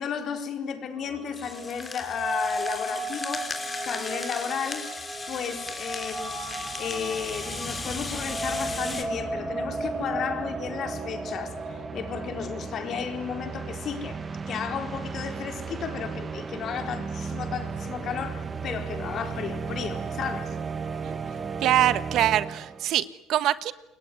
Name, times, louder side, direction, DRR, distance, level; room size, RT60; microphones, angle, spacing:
voice 1, 0.0-3.5 3.8-5.0 5.3-6.4 6.8-14.2 14.5-20.5, left 7 dB, 45° left, 6 dB, 4.3 m, -33 dB
sound 1, 1.0-12.7, right 1 dB, 10° right, 7.1 m, -36 dB
Rattle (instrument), 1.3-9.0, left 3 dB, 20° left, 3.7 m, -37 dB
sound 2, 5.3-5.4 5.6-23.0, right 5 dB, 25° right, 1.4 m, -36 dB
voice 2, 21.6-23.7, right 12 dB, 60° right, 15 dB, 1.2 m, -24 dB
27.5 x 21.5 x 9.5 m, 0.86 s
cardioid pair, 115°, 0 cm